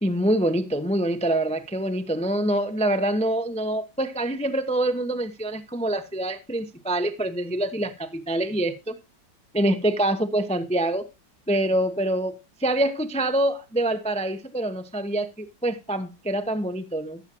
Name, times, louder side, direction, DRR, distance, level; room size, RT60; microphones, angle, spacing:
voice 1, 0.0-8.9 9.5-11.1 11.5-17.2, right 1 dB, 10° left, 0.4 m, -25 dB
15.0 x 7.4 x 3.0 m
omnidirectional pair, 2.0 m